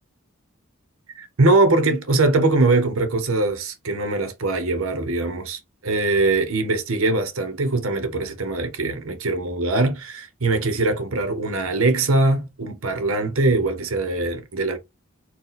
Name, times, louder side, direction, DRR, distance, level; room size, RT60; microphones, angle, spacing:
voice 1, 1.1-14.8, right 2 dB, 75° right, 1.0 m, -22 dB
4.2 x 2.3 x 4.0 m
head